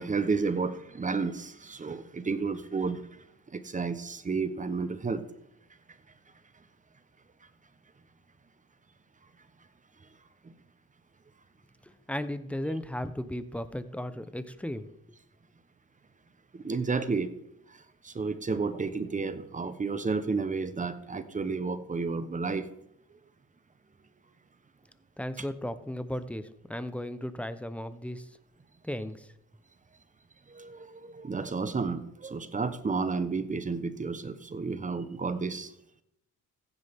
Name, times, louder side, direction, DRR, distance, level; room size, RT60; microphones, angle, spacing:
voice 1, 0.0-3.0 3.5-5.2 10.4-10.5 16.5-17.3 18.0-22.7 30.5-35.7, right 4 dB, 25° right, 11 dB, 1.1 m, -31 dB
voice 2, 11.8-14.9 25.2-28.3 28.8-29.3, left 1 dB, 5° left, 12 dB, 0.9 m, -35 dB
15.0 x 9.9 x 3.7 m, 0.79 s
cardioid pair, 90°, 30 cm